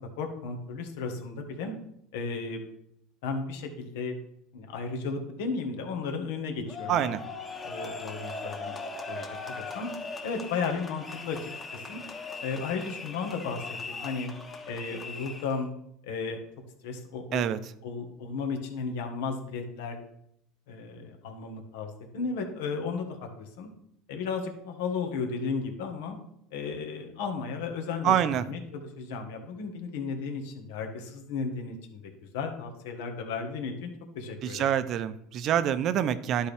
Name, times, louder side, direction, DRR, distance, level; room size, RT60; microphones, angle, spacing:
voice 1, 0.2-1.7 2.1-2.7 3.2-4.1 4.5-7.1 7.6-8.8 9.1-9.2 9.6-9.9 10.2-11.4 11.7-12.0 12.4-14.3 14.7-15.7 16.0-16.4 16.8-17.4 17.8-20.0 20.7-23.7 24.1-26.2 26.5-33.9 34.1-34.7, left 4 dB, 80° left, 4 dB, 1.5 m, -34 dB
sound 1, 6.7-15.6, left 3 dB, 25° left, 1.3 m, -39 dB
voice 2, 6.9-7.2 17.3-17.6 28.0-28.4 34.4-36.5, right 10 dB, 50° right, 13 dB, 0.6 m, -26 dB
11.5 x 4.5 x 3.4 m, 0.75 s
supercardioid pair, 110°, 0 cm